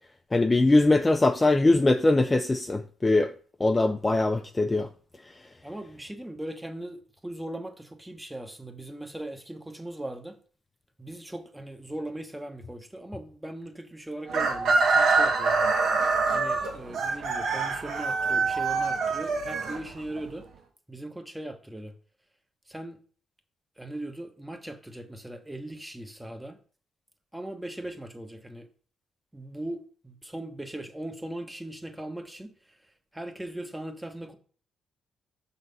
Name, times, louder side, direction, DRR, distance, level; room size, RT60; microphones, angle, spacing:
voice 1, 0.3-3.3 3.6-4.9, left 2 dB, 20° left, 0.4 m, -22 dB
voice 2, 5.6-10.4 11.0-15.5 16.3-20.5 20.9-21.9 22.7-23.0 23.8-26.6 27.3-28.7 29.3-32.8 33.1-34.4, right 1 dB, 10° right, 1.1 m, -39 dB
Chicken rooster, 14.3-20.3, right 4 dB, 70° right, 1.6 m, -25 dB
6.3 x 4.1 x 5.3 m
cardioid pair, 90°, 0 cm